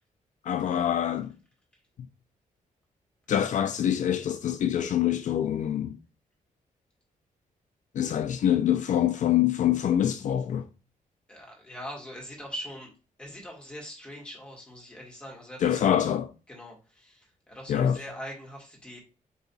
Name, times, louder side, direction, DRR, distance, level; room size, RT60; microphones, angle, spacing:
voice 1, 0.4-1.3 3.3-6.0 7.9-10.7 15.6-16.3 17.7-18.0, left 10 dB, 60° left, 0.4 m, -25 dB
voice 2, 11.3-12.9 13.2-16.0 16.5-19.0, equal, 5° left, 1.6 m, -42 dB
4.5 x 2.9 x 4.0 m
wide cardioid pair, 170°, 14 cm